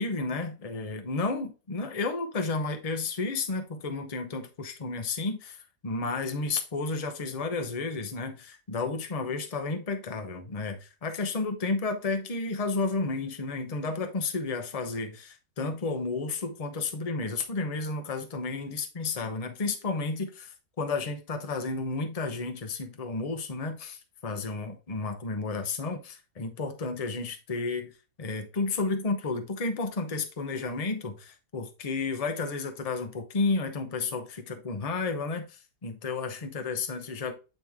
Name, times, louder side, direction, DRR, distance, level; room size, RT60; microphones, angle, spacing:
voice 1, 0.0-27.9 28.2-37.3, left 3 dB, 30° left, 0.8 m, -32 dB
8.9 x 3.1 x 3.6 m
omnidirectional pair, 1.6 m